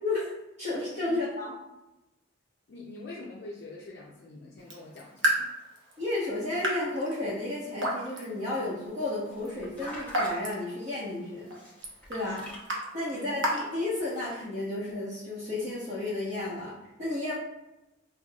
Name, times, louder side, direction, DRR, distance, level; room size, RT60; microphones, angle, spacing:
voice 1, 0.6-1.5 6.0-11.5 12.1-12.4 12.9-16.7 17.0-17.3, left 2 dB, 35° right, -11 dB, 1.0 m, -32 dB
voice 2, 2.7-5.5 12.2-12.5 13.1-13.4, left 2 dB, 55° left, -3 dB, 0.5 m, -44 dB
Raindrop / Drip, 4.6-14.5, right 1 dB, 70° right, 0.8 m, -35 dB
sound 1, 8.9-10.3 11.5-12.7 13.4-13.5, equal, 10° left, 0.7 m, -44 dB
5.5 x 2.3 x 2.3 m, 0.96 s
head